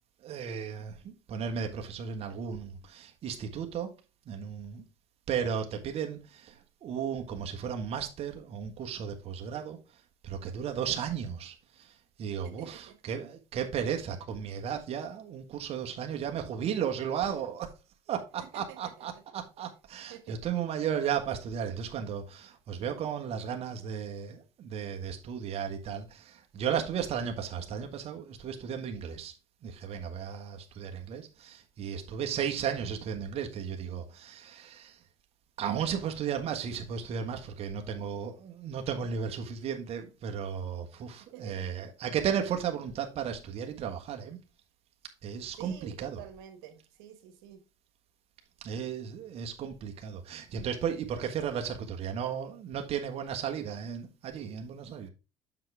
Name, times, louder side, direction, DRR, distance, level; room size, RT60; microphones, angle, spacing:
voice 1, 0.2-3.9 4.3-4.8 5.3-9.8 10.2-11.9 12.2-17.7 18.1-29.3 29.6-35.0 35.6-44.4 45.2-46.2 48.6-55.1, right 8 dB, 50° right, 1.4 m, -35 dB
voice 2, 12.4-13.0 18.4-19.2 20.1-20.5 41.3-41.7 45.5-47.6, right 11 dB, 90° right, 1.4 m, -49 dB
7.5 x 6.1 x 3.4 m
supercardioid pair, 100°, 13 cm